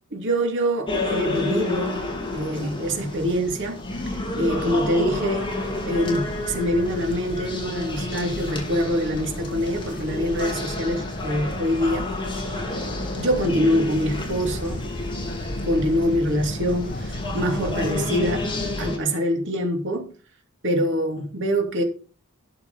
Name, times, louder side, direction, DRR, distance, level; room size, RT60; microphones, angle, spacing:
voice 1, 0.1-5.5 5.8-12.1 13.2-14.9 15.6-18.5 18.8-20.1 20.6-21.8, equal, 55° right, 2.9 m, -25 dB
sound 1, 0.9-19.0, left 2 dB, 20° left, 2.9 m, -31 dB
sound 2, 3.9-18.9, left 1 dB, 40° left, 1.1 m, -35 dB
13.0 x 5.9 x 5.5 m
head